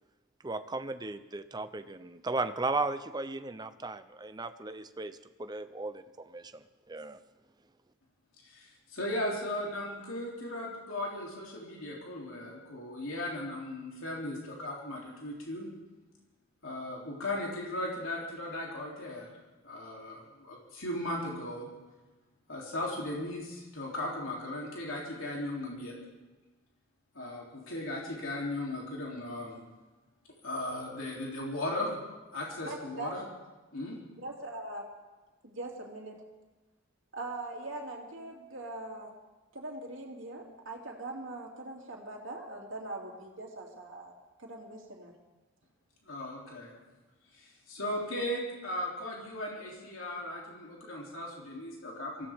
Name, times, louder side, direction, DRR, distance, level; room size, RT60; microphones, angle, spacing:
voice 1, 0.4-7.2, right 3 dB, 20° right, 10 dB, 0.6 m, -36 dB
voice 2, 8.4-15.7 16.6-19.3 19.6-21.7 22.5-26.0 27.1-29.6 30.4-31.9 32.3-33.2 33.7-34.0 46.0-46.7 47.3-52.3, left 1 dB, 75° left, -3 dB, 3.2 m, -37 dB
voice 3, 32.6-33.1 34.1-34.8 35.4-36.2 37.1-39.1 39.5-44.1 44.4-45.1, right 2 dB, 65° right, -1 dB, 2.8 m, -41 dB
24.0 x 16.0 x 3.6 m, 1.2 s
head